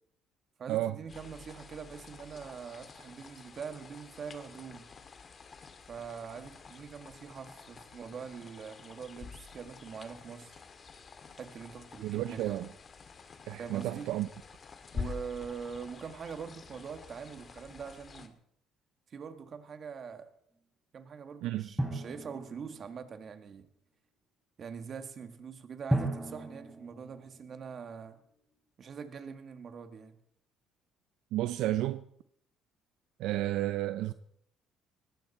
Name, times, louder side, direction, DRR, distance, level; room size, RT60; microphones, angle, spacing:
voice 1, 0.6-4.9 5.9-10.6 11.4-12.6 13.6-14.1 14.9-18.4 19.1-20.3 20.9-23.7 24.6-28.2 28.8-30.2, right 6 dB, 45° right, 1.8 m, -43 dB
sound 1, 1.1-18.3, left 5 dB, 40° left, 1.8 m, -48 dB
voice 2, 12.0-12.7 13.5-14.3 21.4-21.7 31.3-32.0 33.2-34.1, right 14 dB, 80° right, 0.5 m, -31 dB
Drum, 21.8-23.3 25.9-28.1, right 1 dB, 5° right, 3.5 m, -35 dB
19.5 x 16.0 x 4.3 m
cardioid pair, 95°, 0 cm